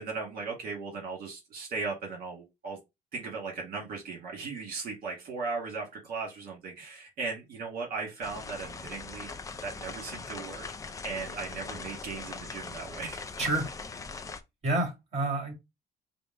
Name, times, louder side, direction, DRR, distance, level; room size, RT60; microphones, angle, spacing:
voice 1, 0.0-2.8 3.1-10.7 11.0-13.3, right 4 dB, 60° right, 1.7 m, -37 dB
sound 1, 8.2-14.4, left 4 dB, 20° left, 0.4 m, -41 dB
voice 2, 14.6-15.5, right 2 dB, 40° right, 2.3 m, -28 dB
4.9 x 2.1 x 3.7 m
cardioid pair, 110°, 17 cm